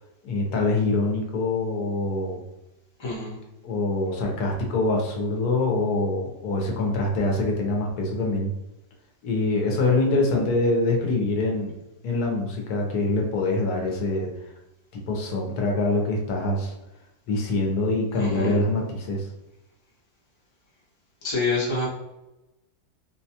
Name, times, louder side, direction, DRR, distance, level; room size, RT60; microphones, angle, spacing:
voice 1, 0.2-2.4 3.6-8.5 9.2-11.7 12.0-14.5 15.1-16.7 17.3-19.3, left 2 dB, 80° left, 0 dB, 1.2 m, -24 dB
voice 2, 3.0-3.4 18.2-18.6 21.2-21.9, left 3 dB, 25° left, -6 dB, 0.8 m, -27 dB
3.9 x 2.2 x 2.8 m, 0.97 s
omnidirectional pair, 1.6 m